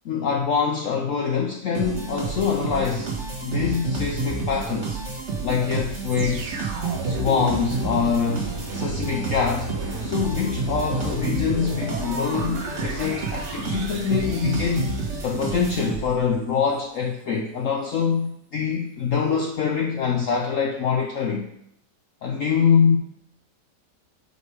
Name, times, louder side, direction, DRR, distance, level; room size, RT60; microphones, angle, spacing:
voice 1, 0.0-3.1 3.4-5.0 5.4-6.6 7.0-9.7 10.0-14.9 15.2-21.5 22.2-23.0, left 6 dB, 65° left, 2 dB, 0.8 m, -24 dB
sound 1, 1.7-16.3, right 3 dB, 40° right, 2.0 m, -30 dB
sound 2, 6.1-16.1 16.7-16.8, right 1 dB, 70° right, 1.6 m, -35 dB
6.6 x 5.3 x 4.7 m, 0.75 s
omnidirectional pair, 1.9 m